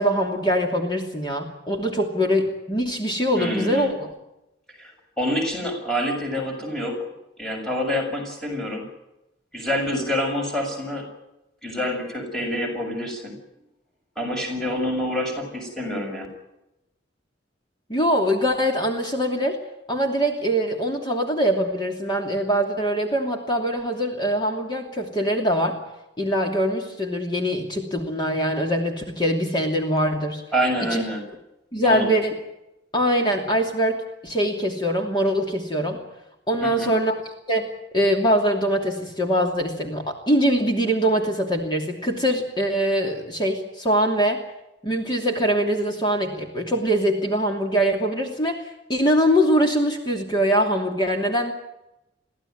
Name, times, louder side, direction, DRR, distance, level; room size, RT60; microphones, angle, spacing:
voice 1, 0.0-4.1 17.9-19.6 19.9-25.8 26.2-30.4 30.9-31.0 31.7-32.3 32.9-36.0 36.5-37.2 37.5-37.7 37.9-44.4 44.8-51.5, equal, 25° left, 2 dB, 2.8 m, -23 dB
voice 2, 3.3-3.9 4.8-7.0 7.4-8.8 9.5-11.1 11.6-13.4 14.2-16.3 30.5-31.2 31.7-32.1 36.6-36.9, equal, 5° left, 1 dB, 6.9 m, -27 dB
24.0 x 16.0 x 9.3 m, 0.90 s
head